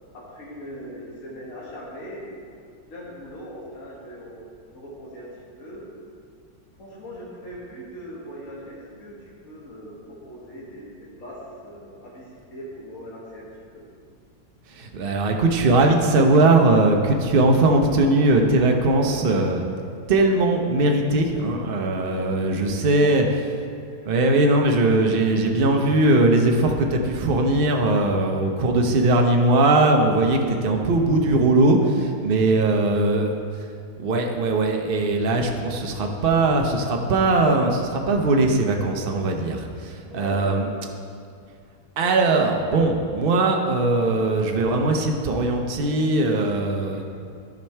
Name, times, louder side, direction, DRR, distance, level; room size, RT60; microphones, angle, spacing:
voice 1, 0.1-2.3 2.9-4.4 4.7-5.3 5.6-5.9 6.8-13.5 13.7-13.9 19.7-19.9 22.0-23.3 23.7-24.1 28.3-28.5 40.0-40.8 46.9-47.0, equal, 50° left, -5 dB, 1.9 m, -40 dB
voice 2, 14.7-19.7 20.1-23.2 24.0-33.4 34.0-40.7 42.0-47.0, right 2 dB, 45° right, 2 dB, 0.7 m, -20 dB
11.0 x 5.2 x 4.5 m, 2.3 s
omnidirectional pair, 1.7 m